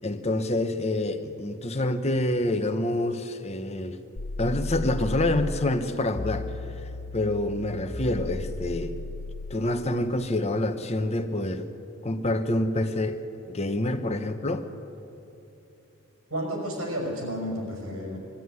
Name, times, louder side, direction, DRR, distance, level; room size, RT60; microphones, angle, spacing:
voice 1, 0.0-4.0 4.4-6.5 7.1-9.0 9.5-11.7 12.0-13.2 13.5-14.7, left 1 dB, 30° left, 8 dB, 1.0 m, -27 dB
sound 1, 4.2-5.6 6.2-9.6, left 2 dB, 60° left, 0.7 m, -34 dB
voice 2, 16.3-18.2, equal, 85° right, 0 dB, 5.8 m, -31 dB
22.0 x 13.0 x 9.5 m, 3.0 s
head